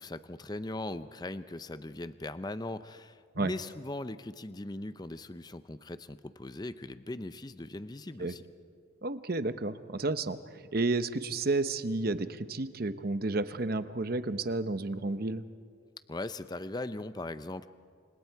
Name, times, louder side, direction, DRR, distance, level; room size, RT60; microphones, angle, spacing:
voice 1, 0.0-8.4 16.1-17.7, left 2 dB, 20° left, 12 dB, 0.5 m, -39 dB
voice 2, 9.0-15.4, right 2 dB, 50° right, 11 dB, 0.8 m, -31 dB
28.5 x 26.0 x 4.7 m, 2.1 s
head